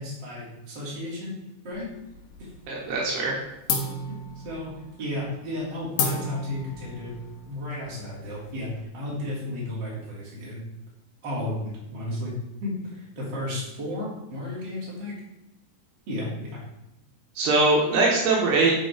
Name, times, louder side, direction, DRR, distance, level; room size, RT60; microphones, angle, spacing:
voice 1, 0.0-1.3 1.6-1.9 2.4-2.5 3.0-3.1 4.1-4.7 5.0-7.2 7.5-10.6 11.2-12.3 12.6-15.2 16.1-16.6, left 1 dB, 30° right, -6 dB, 3.0 m, -33 dB
sound 1, 1.7-2.6 2.9-3.3 3.7-8.8, left 2 dB, 65° left, 1.9 m, -33 dB
voice 2, 2.7-3.4 17.4-18.7, right 3 dB, 75° right, -2 dB, 3.3 m, -22 dB
9.9 x 4.8 x 4.3 m, 0.91 s
omnidirectional pair, 5.0 m